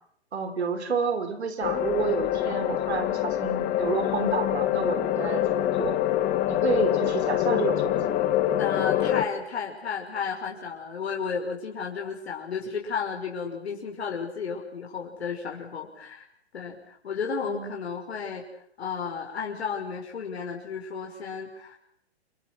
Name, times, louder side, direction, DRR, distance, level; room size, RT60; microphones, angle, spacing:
voice 1, 0.3-6.0 6.5-8.1 17.4-17.8, right 5 dB, 75° right, 8 dB, 6.0 m, -30 dB
sound 1, 1.6-9.2, left 12 dB, 25° left, 2.6 m, -25 dB
voice 2, 8.6-16.3 16.5-18.4 18.8-21.8, left 6 dB, 70° left, 0 dB, 5.8 m, -33 dB
28.0 x 23.5 x 6.2 m, 0.69 s
hypercardioid pair, 135°, 33 cm